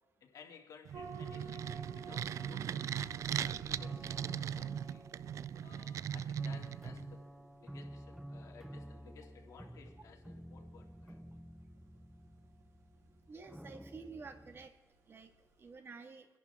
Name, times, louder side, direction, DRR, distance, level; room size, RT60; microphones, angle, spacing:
voice 1, 0.2-5.0 5.6-7.3 7.6-11.2, left 6 dB, 75° left, 1 dB, 2.6 m, -57 dB
sound 1, 0.9-7.2, right 9 dB, 65° right, 0.3 m, -39 dB
sound 2, 0.9-15.7, right 4 dB, 80° right, 3.0 m, -56 dB
sound 3, 3.8-5.8 6.4-14.7, equal, 5° right, 0.5 m, -51 dB
voice 2, 13.3-14.7 15.1-15.3 15.6-16.3, right 4 dB, 40° right, 6 dB, 1.8 m, -50 dB
26.5 x 11.0 x 3.6 m, 1.2 s
cardioid pair, 105°, 6 cm